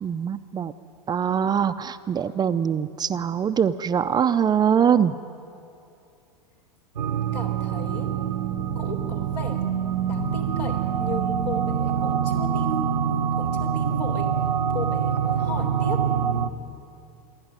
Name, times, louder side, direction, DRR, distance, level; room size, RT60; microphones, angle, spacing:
voice 1, 0.0-0.7 1.1-5.1, right 8 dB, 20° right, 11 dB, 0.5 m, -23 dB
sound 1, 7.0-16.5, right 8 dB, 85° right, 1.0 m, -25 dB
voice 2, 7.3-8.1 8.8-9.6 10.0-12.9 13.2-14.3 14.7-16.1, left 3 dB, 80° left, 2 dB, 4.0 m, -35 dB
27.5 x 11.5 x 9.7 m, 2.6 s
hypercardioid pair, 105°, 21 cm